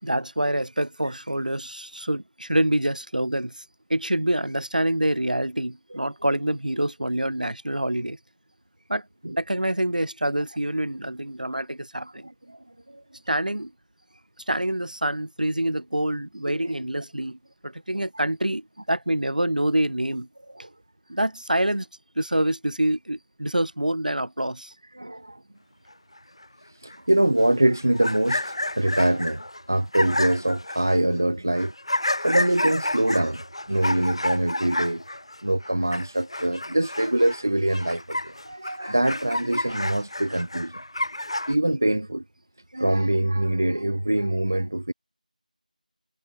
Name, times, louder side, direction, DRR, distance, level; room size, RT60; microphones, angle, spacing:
voice 1, 0.0-3.6 3.9-8.2 8.9-9.1 9.4-12.3 13.3-13.7 14.5-17.4 17.6-20.3 21.1-21.9 22.2-24.7, right 1 dB, 65° right, 5.3 m, -26 dB
voice 2, 12.2-12.6 12.9-13.0 16.5-16.8 20.5-20.7 24.9-25.4 26.8-31.7 32.2-33.4 33.7-35.0 35.4-40.8 41.5-42.2 42.7-44.9, right 1 dB, 20° right, 0.8 m, -24 dB
sound 1, 26.2-26.3 26.4-26.5 26.9-27.0 27.4-31.0 31.5-37.4 37.7-41.5, left 1 dB, 40° left, 4.1 m, -30 dB
figure-of-eight pair, 180°, 5 cm